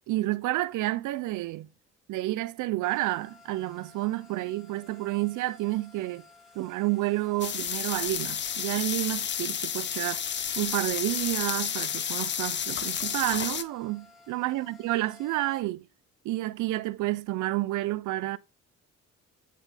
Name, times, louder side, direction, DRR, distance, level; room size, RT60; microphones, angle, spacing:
voice 1, 0.1-1.7 2.1-6.2 6.6-10.2 10.6-15.8 16.2-18.4, right 17 dB, 80° right, 0.5 m, -30 dB
sound 1, 2.8-15.6, left 3 dB, ahead, 2.1 m, -55 dB
sound 2, 7.4-13.6, left 8 dB, 40° left, 0.6 m, -31 dB
9.0 x 3.8 x 3.4 m
cardioid pair, 90°, 30 cm